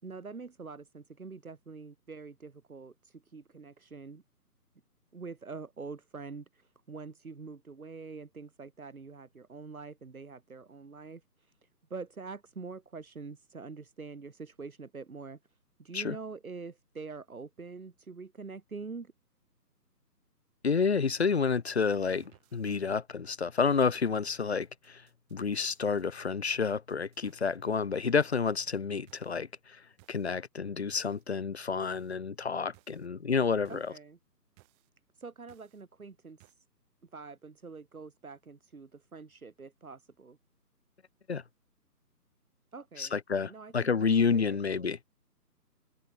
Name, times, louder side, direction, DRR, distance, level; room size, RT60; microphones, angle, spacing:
voice 1, 0.0-4.2 5.1-11.5 11.9-15.4 15.8-19.1 33.7-34.2 35.2-36.5 37.1-40.4 42.7-43.2 43.5-44.9, right 4 dB, 60° right, 6.8 m, -45 dB
voice 2, 20.6-25.0 25.3-29.5 30.1-33.9 41.3-41.4 43.0-45.0, left 5 dB, 40° left, 0.9 m, -29 dB
sound 1, 22.1-23.0 23.6-23.9 24.5-27.6 28.2-28.5 29.1-29.4 30.0-30.3 30.9-31.2 31.8-32.2 32.7-33.1 33.7-34.0 34.6-34.9 35.5-35.8 36.4-36.5, right 40 dB or more, 15° right, 6.1 m, -63 dB
figure-of-eight pair, 150°, 48 cm